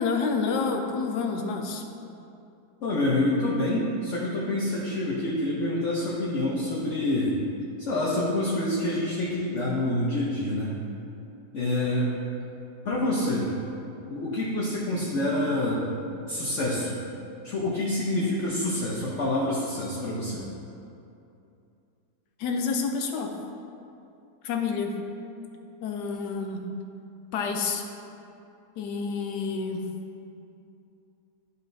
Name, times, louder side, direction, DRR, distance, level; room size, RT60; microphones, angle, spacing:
voice 1, 0.0-1.8 22.4-23.4 24.4-25.0 25.8-26.7 27.3-27.9 28.8-29.8, left 5 dB, 85° left, 4 dB, 1.2 m, -28 dB
voice 2, 2.8-7.4 7.8-10.7 11.5-12.1 12.8-13.5 14.1-15.8 16.3-17.0 17.4-20.5, left 1 dB, 55° left, -6 dB, 1.0 m, -27 dB
11.0 x 4.0 x 2.6 m, 2.7 s
omnidirectional pair, 1.8 m